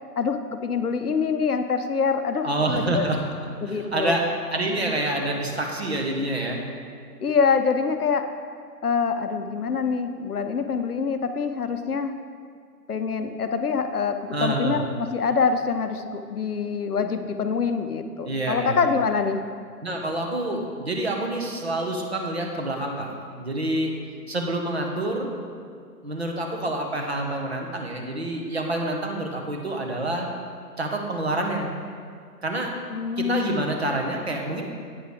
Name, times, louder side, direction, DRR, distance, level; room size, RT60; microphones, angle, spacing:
voice 1, 0.2-3.1 3.6-4.2 7.2-8.3 8.8-12.2 12.9-19.4 32.9-33.6, left 5 dB, 65° left, 8 dB, 0.7 m, -25 dB
voice 2, 2.4-3.2 3.6-4.2 4.5-6.6 14.3-14.8 18.2-18.8 19.8-23.1 23.4-23.9 24.3-25.3 26.0-30.3 30.8-31.7 32.4-32.7 33.2-34.6, right 1 dB, 40° right, 1 dB, 1.0 m, -27 dB
8.6 x 6.2 x 4.7 m, 2.2 s
figure-of-eight pair, 155°, 49 cm